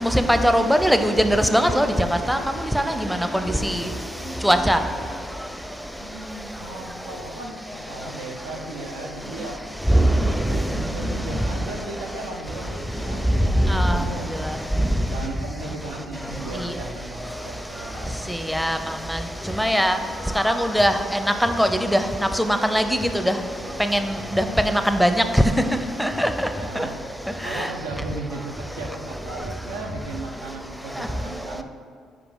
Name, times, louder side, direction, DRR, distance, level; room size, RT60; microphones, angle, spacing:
voice 1, 0.0-1.9 2.3-2.4 2.7-2.8 3.6-3.7 4.4-4.8 9.9-10.1 13.7-14.0 18.5-18.8 19.6-20.0 20.4-20.9 21.4-22.0 22.4-22.9 23.3-23.4 23.9-24.0 24.3-25.1 26.0-26.3, equal, ahead, 7 dB, 0.5 m, -19 dB
voice 2, 6.0-9.7 10.2-13.6 13.9-14.4 15.1-18.2 26.6-27.0 27.4-31.6, right 2 dB, 85° right, 0 dB, 0.7 m, -36 dB
4.9 x 4.8 x 5.3 m, 2.2 s
hypercardioid pair, 50°, 0 cm